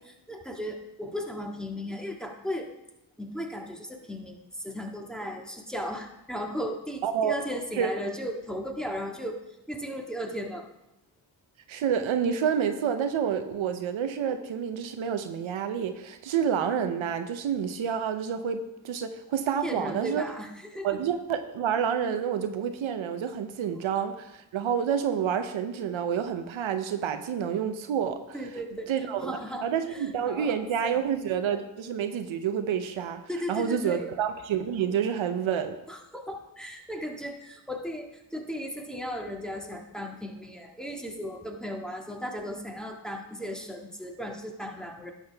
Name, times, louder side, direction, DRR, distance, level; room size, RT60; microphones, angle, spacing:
voice 1, 0.1-2.7 3.2-9.4 9.7-10.7 19.6-20.9 28.3-28.9 29.2-30.0 30.3-31.0 33.3-34.1 35.9-45.1, equal, ahead, 1 dB, 1.7 m, -36 dB
voice 2, 7.0-7.4 7.8-7.9 11.7-20.3 20.8-28.4 28.9-29.3 29.6-33.2 33.5-35.8, right 8 dB, 85° right, 9 dB, 0.7 m, -28 dB
11.5 x 7.3 x 3.4 m, 0.90 s
cardioid pair, 45°, 46 cm